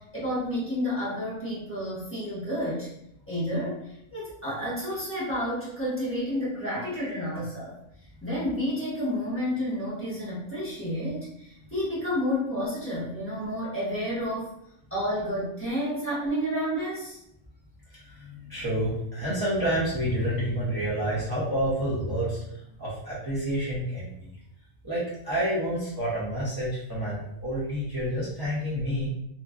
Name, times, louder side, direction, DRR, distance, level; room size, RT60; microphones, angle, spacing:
voice 1, 0.0-2.9 3.3-3.8 4.1-7.7 8.2-14.5 14.9-17.2, equal, 10° left, -10 dB, 0.9 m, -30 dB
voice 2, 17.9-24.3 24.8-29.1, equal, 25° right, -9 dB, 0.5 m, -29 dB
2.8 x 2.3 x 2.3 m, 0.78 s
omnidirectional pair, 1.4 m